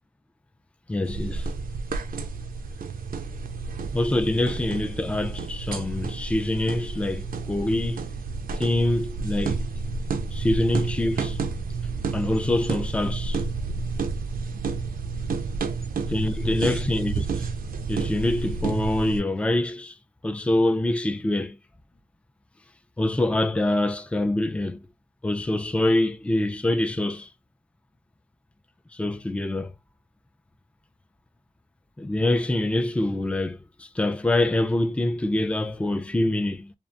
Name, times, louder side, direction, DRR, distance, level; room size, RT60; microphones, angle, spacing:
voice 1, 0.9-1.5 3.9-8.0 8.6-9.6 10.3-11.4 12.1-13.4 16.1-17.5 17.9-20.0 20.2-21.6 23.0-24.8 25.2-27.3 28.9-29.7 32.0-36.7, left 1 dB, 5° left, 0.3 m, -25 dB
sound 1, 1.0-19.2, right 4 dB, 65° right, 0.4 m, -30 dB
2.4 x 2.1 x 2.5 m
wide cardioid pair, 70°, 16 cm